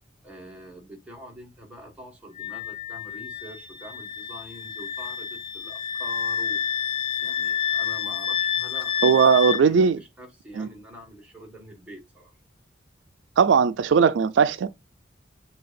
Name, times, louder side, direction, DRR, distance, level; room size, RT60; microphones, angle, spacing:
voice 1, 0.2-6.6 7.2-9.3 9.6-12.3, right 1 dB, 5° right, 1.7 m, -44 dB
Wind instrument woodwind instrument, 2.4-9.6, left 8 dB, 30° left, 0.5 m, -29 dB
voice 2, 9.0-10.0 10.5-10.7 13.4-14.7, right 6 dB, 80° right, 0.4 m, -18 dB
7.5 x 2.8 x 2.5 m
head